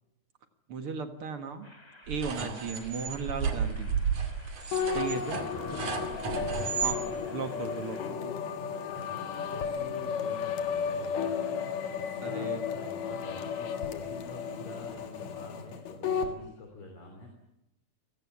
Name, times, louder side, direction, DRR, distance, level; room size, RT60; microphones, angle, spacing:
voice 1, 0.7-1.7 2.1-3.9 4.9-5.4 6.8-7.1 7.3-8.3 12.2-12.6, right 5 dB, 50° right, 8 dB, 2.4 m, -36 dB
sound 1, 1.6-8.1, left 1 dB, 10° left, 2.0 m, -49 dB
sound 2, 2.1-7.0, right 6 dB, 80° right, 3.8 m, -33 dB
sound 3, 4.7-16.3, left 6 dB, 70° left, 3.0 m, -34 dB
voice 2, 5.0-6.0 6.3-6.9 8.9-11.7 12.0-17.3, left 2 dB, 50° left, 3 dB, 4.3 m, -47 dB
28.5 x 18.0 x 8.6 m, 0.87 s
omnidirectional pair, 3.3 m